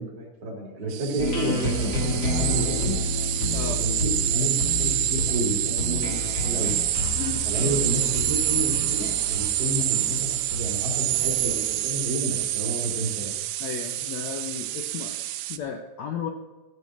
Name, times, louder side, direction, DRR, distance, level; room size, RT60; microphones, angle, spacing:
voice 1, 0.0-3.0 3.8-4.5 4.8-6.8 7.4-13.3, equal, 45° right, -1 dB, 3.5 m, -30 dB
sound 1, 0.9-15.6, right 14 dB, 85° right, 1.7 m, -27 dB
sound 2, 1.2-13.0, left 1 dB, 40° left, 1.1 m, -31 dB
voice 2, 13.6-16.3, left 7 dB, 75° left, 4 dB, 1.7 m, -34 dB
14.5 x 5.2 x 7.3 m, 1.2 s
omnidirectional pair, 4.0 m